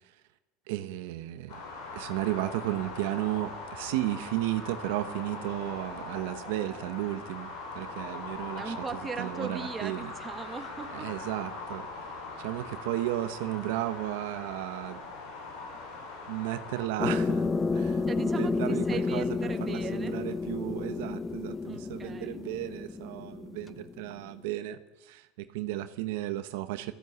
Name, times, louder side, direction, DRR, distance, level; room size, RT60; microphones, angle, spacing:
voice 1, 0.7-1.6 1.9-8.7 9.2-10.1 10.9-11.9 12.4-15.0 16.2-26.9, right 15 dB, 80° right, 11 dB, 0.9 m, -34 dB
sound 1, 1.5-16.9, left 3 dB, 70° left, 5.0 m, -41 dB
voice 2, 8.5-11.1 17.8-20.1 21.7-22.4, right 5 dB, 20° right, 8 dB, 1.4 m, -39 dB
sound 2, 17.0-24.2, left 4 dB, 20° left, 0.8 m, -31 dB
14.0 x 12.5 x 8.1 m, 0.99 s
supercardioid pair, 120°, 0 cm